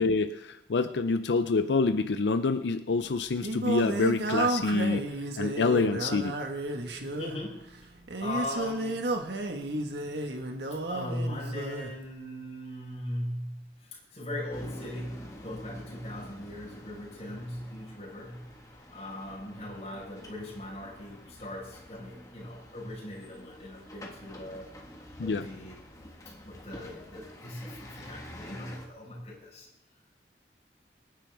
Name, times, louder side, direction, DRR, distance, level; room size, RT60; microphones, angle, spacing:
voice 1, 0.0-5.1 5.4-6.4 25.2-25.5, left 3 dB, 85° left, 9 dB, 0.5 m, -27 dB
Singing, 2.9-12.0, right 2 dB, 80° right, 1.4 m, -32 dB
voice 2, 7.2-7.7 8.2-9.1 10.9-18.5 18.9-24.7 25.2-25.8 26.4-29.7, left 1 dB, 35° left, -3 dB, 4.6 m, -39 dB
sound 1, 14.5-28.9, left 1 dB, 20° left, 1.6 m, -48 dB
25.5 x 10.0 x 3.5 m, 0.90 s
head